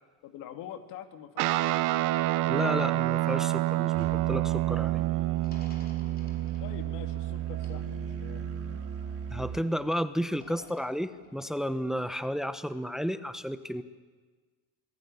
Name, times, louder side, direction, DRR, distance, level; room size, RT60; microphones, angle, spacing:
voice 1, 0.2-2.0 6.6-8.5, left 10 dB, 80° left, 7 dB, 2.4 m, -45 dB
Guitar, 1.4-9.0, right 16 dB, 75° right, 1.0 m, -29 dB
voice 2, 2.5-5.0 9.3-13.8, equal, ahead, 12 dB, 0.9 m, -32 dB
Musical instrument, 3.9-9.6, right 10 dB, 45° right, 3.4 m, -35 dB
sound 1, 5.4-9.5 10.3-12.0, left 2 dB, 30° left, 5.4 m, -56 dB
27.0 x 20.0 x 9.7 m, 1.4 s
cardioid pair, 130°, 31 cm